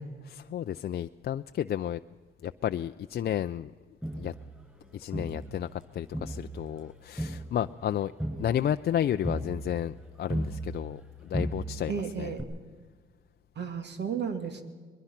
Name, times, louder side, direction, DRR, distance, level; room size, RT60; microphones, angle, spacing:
voice 1, 0.2-2.0 2.4-3.7 4.2-4.3 4.9-8.1 8.4-12.4, left 10 dB, 55° left, 9 dB, 0.5 m, -32 dB
Crowd, 4.0-5.8 6.1-11.1 11.3-12.0 12.4-12.5, right 1 dB, 5° right, 7.3 m, -36 dB
voice 2, 11.9-12.5 13.6-14.6, right 6 dB, 60° right, 7 dB, 2.7 m, -33 dB
22.5 x 22.0 x 5.9 m, 1.5 s
cardioid pair, 90°, 20 cm